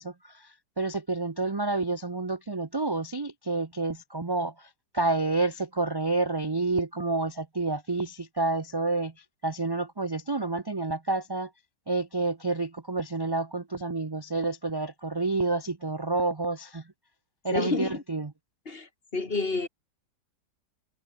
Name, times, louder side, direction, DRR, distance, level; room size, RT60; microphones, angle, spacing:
voice 1, 0.0-11.5 11.9-16.8 17.4-18.3, right 3 dB, 30° right, 0.5 m, -29 dB
voice 2, 17.5-18.0 18.7-19.7, left 3 dB, 35° left, 2.4 m, -29 dB
open air
omnidirectional pair, 1.8 m